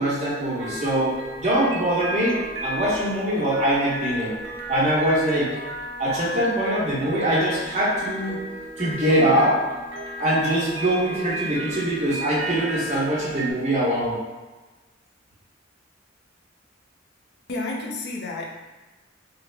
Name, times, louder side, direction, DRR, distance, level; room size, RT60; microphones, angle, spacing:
voice 1, 0.0-4.3 4.7-5.5 6.0-8.4 8.8-9.6 10.2-14.2, right 1 dB, 40° right, -8 dB, 1.0 m, -23 dB
sound 1, 0.6-13.5, equal, 70° right, 0.5 m, -34 dB
voice 2, 17.5-18.6, left 2 dB, 60° left, -1 dB, 0.5 m, -31 dB
3.2 x 2.1 x 3.3 m, 1.2 s
head